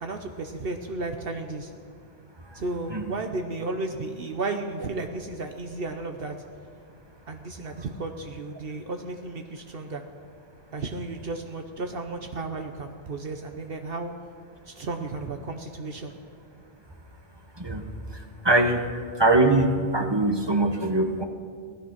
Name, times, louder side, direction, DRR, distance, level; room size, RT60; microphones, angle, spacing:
voice 1, 0.0-1.7 2.5-6.4 7.3-10.0 10.7-14.1 14.7-16.1, right 3 dB, 65° right, 5 dB, 1.0 m, -33 dB
voice 2, 18.4-18.8 19.2-21.2, right 2 dB, 25° right, 5 dB, 1.0 m, -22 dB
17.0 x 12.5 x 5.9 m, 2.1 s
omnidirectional pair, 1.1 m